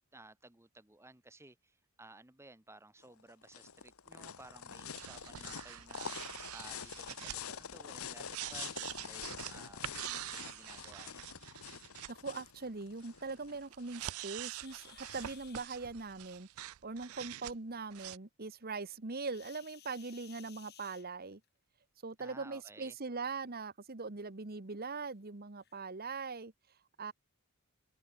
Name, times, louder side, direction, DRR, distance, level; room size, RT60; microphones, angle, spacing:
voice 1, 0.1-6.3 6.5-11.2 22.2-22.9, right 2 dB, 10° right, 1.2 m, -56 dB
sound 1, 3.0-13.9, left 7 dB, 75° left, 1.3 m, -46 dB
sound 2, 5.0-12.1 13.1-17.5 17.9-18.2, right 14 dB, 75° right, 0.4 m, -45 dB
voice 2, 12.1-16.5 16.8-21.4 22.0-26.5 27.0-27.1, right 4 dB, 45° right, 1.3 m, -41 dB
sound 3, 14.5-15.7 19.2-21.5 22.7-22.9 23.5-23.6 24.1-24.2 25.0-25.1 25.6-25.8, left 11 dB, 50° left, 2.9 m, -58 dB
head